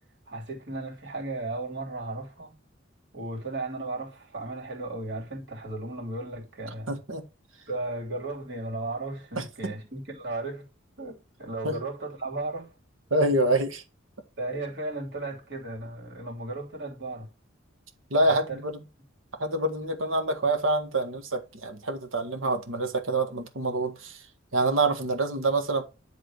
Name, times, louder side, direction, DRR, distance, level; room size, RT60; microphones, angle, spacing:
voice 1, 0.3-2.5 3.1-6.9 7.7-10.7 11.0-12.7 14.4-17.3 18.2-18.6, right 2 dB, 60° right, 3.1 m, -35 dB
voice 2, 6.9-7.2 9.3-9.7 11.6-11.8 13.1-13.8 18.1-18.8 19.4-24.2 24.5-25.8, right 2 dB, 90° right, 1.6 m, -26 dB
10.5 x 3.8 x 4.9 m
head